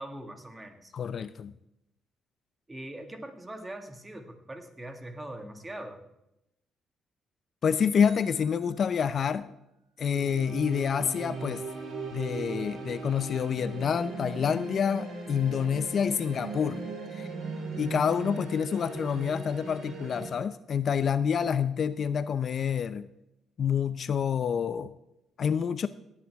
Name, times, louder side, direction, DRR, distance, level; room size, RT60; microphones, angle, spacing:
voice 1, 0.0-0.9 2.7-6.0, right 1 dB, 20° right, 5 dB, 1.9 m, -42 dB
voice 2, 0.9-1.5 7.6-9.5 10.0-11.6 12.1-16.8 17.1-17.3 17.8-23.1 23.6-24.9 25.4-25.9, left 7 dB, 55° left, 14 dB, 0.5 m, -28 dB
sound 1, 8.0-10.1, right 3 dB, 50° right, 5.6 m, -58 dB
sound 2, 10.0-20.3, right 4 dB, 65° right, 4.5 m, -38 dB
17.5 x 9.8 x 3.5 m, 0.85 s
cardioid pair, 90°, 0 cm